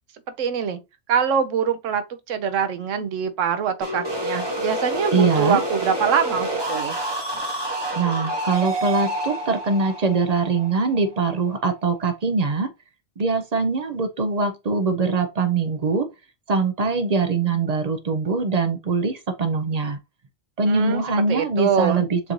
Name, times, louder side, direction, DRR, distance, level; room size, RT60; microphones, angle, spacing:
voice 1, 0.4-0.8 1.1-6.9 20.7-21.0 21.3-22.0, right 7 dB, 75° right, 1.0 m, -24 dB
sound 1, 3.8-11.5, right 1 dB, 25° right, 0.8 m, -28 dB
voice 2, 5.1-5.6 7.9-12.7 13.2-16.1 16.5-20.0 20.6-22.2, right 4 dB, 55° right, 0.4 m, -22 dB
6.9 x 2.6 x 3.0 m
omnidirectional pair, 1.4 m